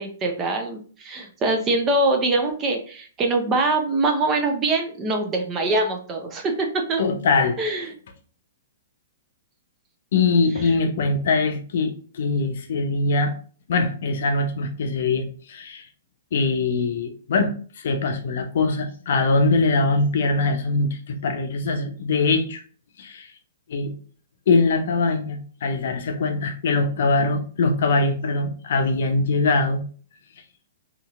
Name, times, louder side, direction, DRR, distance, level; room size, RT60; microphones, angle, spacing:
voice 1, 0.0-7.0 7.6-7.9, right 2 dB, 25° right, 3 dB, 0.7 m, -23 dB
voice 2, 7.0-7.6 10.1-13.3 13.7-15.9 16.3-22.6 23.0-23.3 23.7-23.9 24.5-29.8, left 3 dB, 65° left, 5 dB, 0.5 m, -22 dB
2.9 x 2.8 x 2.4 m, 0.42 s
hypercardioid pair, 120°, 0 cm